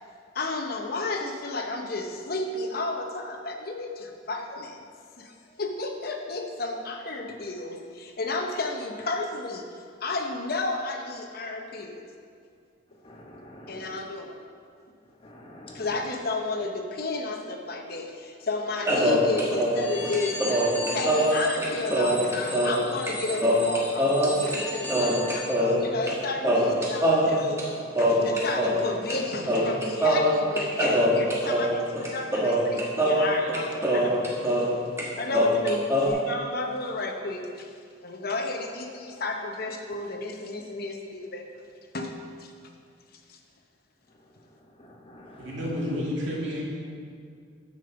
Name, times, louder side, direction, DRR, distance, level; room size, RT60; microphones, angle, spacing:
voice 1, 0.3-4.8 5.2-9.7 10.0-12.1 13.7-14.4 15.7-20.4 20.9-27.6 28.0-34.2 34.5-34.7 35.2-37.7 38.0-41.7 41.9-42.5 43.3-43.4, left 3 dB, 50° left, 3 dB, 0.9 m, -32 dB
voice 2, 13.0-14.0 15.2-15.9 44.8-45.5, left 1 dB, 25° left, -1 dB, 1.2 m, -47 dB
sound 1, 18.9-22.8 23.1-23.2 23.4-24.6 24.9-26.2 26.4-28.8 29.1-29.2 29.5-34.7 35.0-36.1, equal, 15° right, 1.3 m, -23 dB
sound 2, 19.7-25.5, left 1 dB, 10° left, 1.6 m, -36 dB
voice 3, 45.4-46.6, equal, 65° right, -5 dB, 2.7 m, -30 dB
10.0 x 5.2 x 6.8 m, 2.3 s
head